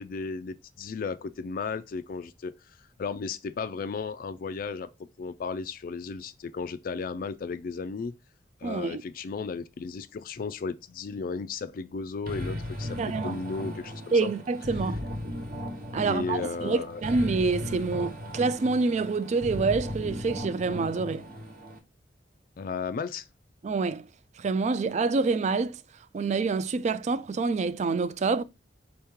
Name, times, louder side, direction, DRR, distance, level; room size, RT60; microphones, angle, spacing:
voice 1, 0.0-2.5 3.0-4.9 5.2-8.1 8.6-14.3 16.0-17.0 22.6-23.3, left 4 dB, 50° left, 0.4 m, -34 dB
voice 2, 8.6-9.0 13.0-13.4 14.1-15.0 15.9-21.3 23.6-24.1 24.4-25.8 26.1-28.4, right 4 dB, 40° right, 0.3 m, -27 dB
sound 1, 12.3-21.8, left 1 dB, 55° right, 1.1 m, -36 dB
4.6 x 3.0 x 3.5 m
head